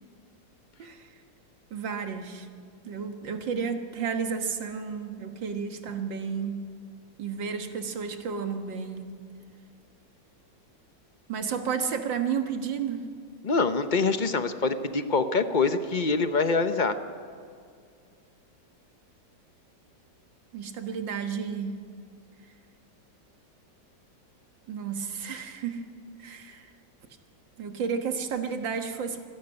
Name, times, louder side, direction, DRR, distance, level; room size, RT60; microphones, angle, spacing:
voice 1, 0.8-1.1 1.7-2.5 2.8-6.5 7.2-9.1 11.3-13.1 20.5-21.8 24.7-25.9 26.2-26.7 27.6-29.2, right 6 dB, 90° right, 6 dB, 2.3 m, -32 dB
voice 2, 13.4-17.0, left 4 dB, 35° left, 9 dB, 0.7 m, -25 dB
26.5 x 12.0 x 9.8 m, 2.2 s
omnidirectional pair, 2.0 m